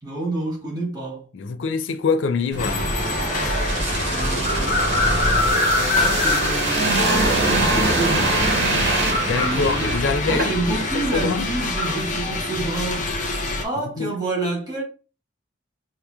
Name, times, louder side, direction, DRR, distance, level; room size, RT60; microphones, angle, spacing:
voice 1, 0.0-1.2 4.1-4.8 6.0-7.0 7.4-8.4 9.4-10.0 10.2-13.1 13.6-14.8, right 2 dB, 20° right, 1.3 m, -28 dB
voice 2, 1.3-2.9 9.1-11.5 13.8-14.1, left 4 dB, 80° left, 0.4 m, -25 dB
sound 1, 2.5-10.9 11.2-11.3, right 2 dB, 75° right, 1.6 m, -23 dB
sound 2, 2.6-13.6, left 2 dB, 40° left, 0.6 m, -25 dB
4.7 x 2.9 x 2.3 m
head